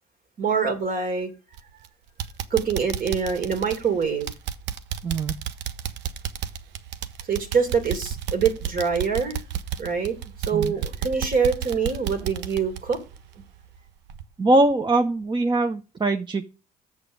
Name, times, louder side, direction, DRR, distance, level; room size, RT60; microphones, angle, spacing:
voice 1, 0.4-1.3 2.5-4.3 7.3-9.4 9.8-13.0, right 6 dB, 45° right, 2.4 m, -25 dB
sound 1, 1.5-1.9 2.2-13.8 14.1-14.2 14.7-14.8, right 9 dB, 65° right, 0.8 m, -32 dB
voice 2, 5.0-5.4 10.5-10.7 14.4-16.4, right 2 dB, 25° right, 0.8 m, -22 dB
7.1 x 6.7 x 5.1 m
hypercardioid pair, 55°, 20 cm